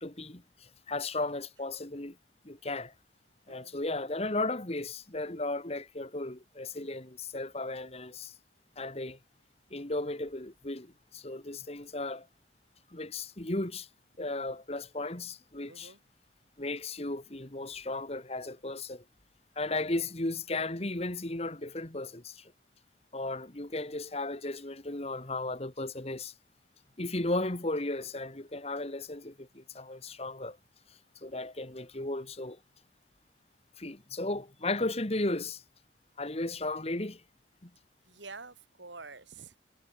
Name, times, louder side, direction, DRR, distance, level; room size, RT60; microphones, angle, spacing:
voice 1, 0.0-2.2 2.4-2.9 3.5-8.3 8.8-9.2 9.7-12.3 12.9-13.9 14.2-15.9 16.6-19.0 19.6-22.5 23.1-26.3 27.0-30.6 31.2-32.6 33.8-35.6 36.2-37.2 37.6-37.7, left 2 dB, 35° left, 1.8 m, -35 dB
voice 2, 15.7-16.0 38.1-39.6, right 4 dB, 80° right, 5.2 m, -48 dB
head